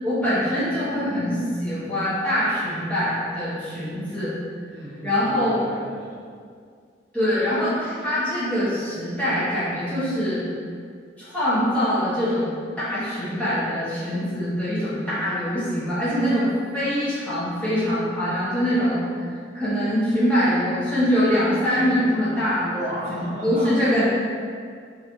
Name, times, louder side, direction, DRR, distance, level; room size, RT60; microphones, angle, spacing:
voice 1, 0.0-4.4 5.0-5.6 7.1-10.4 11.2-12.5 12.8-19.3 19.5-22.7 23.1-24.0, equal, 10° left, -12 dB, 0.7 m, -23 dB
voice 2, 4.7-6.3 22.6-24.0, equal, 40° right, -10 dB, 0.7 m, -34 dB
2.6 x 2.2 x 2.9 m, 2.1 s
head